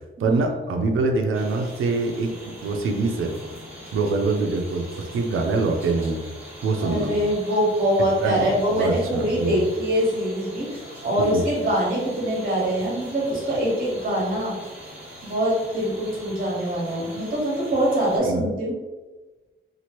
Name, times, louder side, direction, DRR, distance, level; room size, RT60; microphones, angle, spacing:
voice 1, 0.2-3.3 3.9-6.2 6.6-7.1 8.2-9.6 11.2-11.4 18.2-18.5, right 3 dB, 85° right, 3 dB, 0.4 m, -24 dB
sound 1, 1.3-18.2, equal, 5° right, 1.2 m, -42 dB
voice 2, 6.8-14.5 15.2-18.8, equal, 45° right, -4 dB, 1.0 m, -24 dB
2.9 x 2.5 x 2.9 m, 1.2 s
wide cardioid pair, 155°, 21 cm